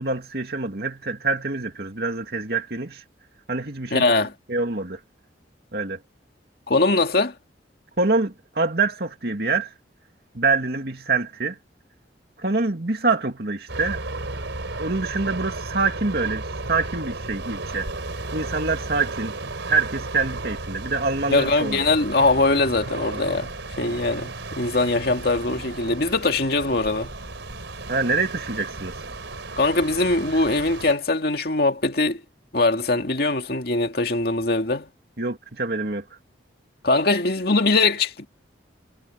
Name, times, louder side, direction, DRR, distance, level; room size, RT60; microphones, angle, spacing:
voice 1, 0.0-3.0 3.5-4.1 4.5-5.0 5.7-6.0 8.0-9.7 10.3-11.6 12.4-14.0 14.8-17.9 18.3-19.4 19.7-21.8 27.9-29.0 35.2-36.0, right 3 dB, 55° right, 2.3 m, -25 dB
voice 2, 3.9-4.3 6.7-7.3 21.3-23.5 23.8-27.1 29.6-32.2 32.5-34.9 36.8-38.3, left 2 dB, 55° left, 2.3 m, -21 dB
sound 1, 13.7-30.9, right 2 dB, 85° right, 4.1 m, -34 dB
head